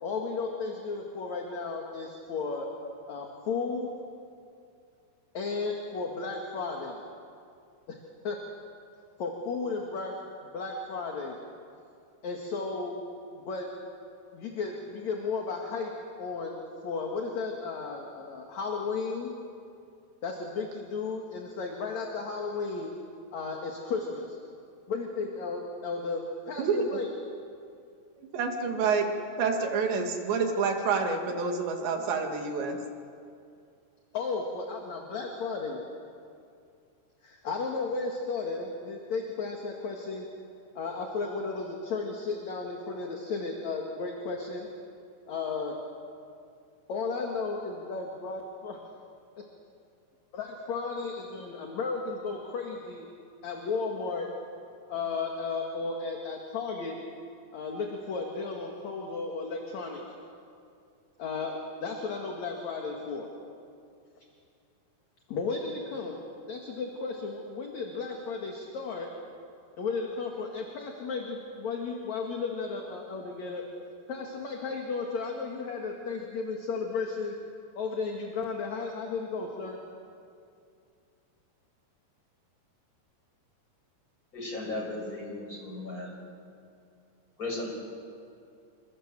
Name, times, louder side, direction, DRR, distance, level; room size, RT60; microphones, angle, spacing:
voice 1, 0.0-2.7 3.1-3.9 5.3-7.0 7.9-8.0 8.2-8.4 9.2-10.1 10.5-11.4 12.2-13.0 13.3-13.7 14.3-15.9 16.2-16.6 16.8-19.3 20.2-22.9 23.3-24.4 24.9-27.1 34.1-35.8 37.2-40.3 40.7-44.7 45.3-45.8 46.9-48.8 49.4-49.5 50.3-53.0 53.4-54.3 54.9-57.0 57.5-60.0 61.2-63.3 65.3-66.2 66.5-69.1 69.8-73.6 74.1-77.3 77.7-79.8, left 4 dB, 50° left, 1 dB, 2.9 m, -34 dB
voice 2, 26.6-27.0 28.3-29.1 29.4-32.8, right 5 dB, 85° right, 3 dB, 4.6 m, -28 dB
voice 3, 84.3-86.2 87.4-87.7, left 2 dB, 20° left, 0 dB, 6.2 m, -36 dB
28.0 x 27.0 x 7.7 m, 2.4 s
omnidirectional pair, 4.9 m